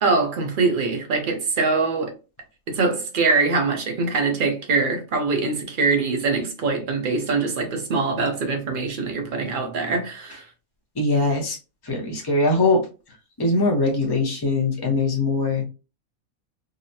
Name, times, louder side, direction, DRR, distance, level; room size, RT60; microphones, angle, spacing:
voice 1, 0.0-2.1 2.7-10.4, right 4 dB, 45° right, 0.8 m, -23 dB
voice 2, 11.0-11.6 11.9-12.9 13.4-15.6, left 2 dB, 25° left, 0.6 m, -21 dB
4.0 x 2.1 x 2.7 m
omnidirectional pair, 1.5 m